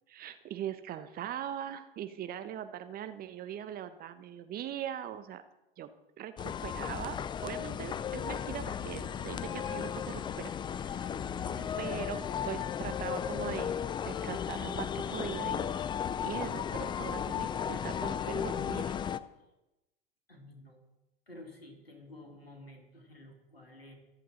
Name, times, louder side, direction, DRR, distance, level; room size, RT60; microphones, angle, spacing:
voice 1, 0.1-5.4 5.8-5.9 6.2-7.2 7.4-11.1 11.8-13.8 14.0-15.7 16.2-19.0, right 10 dB, 30° right, 10 dB, 1.1 m, -41 dB
sound 1, 6.4-19.2, left 8 dB, 15° left, 0.5 m, -35 dB
voice 2, 11.6-12.1 20.3-20.8 21.3-24.0, left 1 dB, 90° left, 3 dB, 2.9 m, -51 dB
24.5 x 8.3 x 4.0 m, 0.96 s
figure-of-eight pair, 90°, 29 cm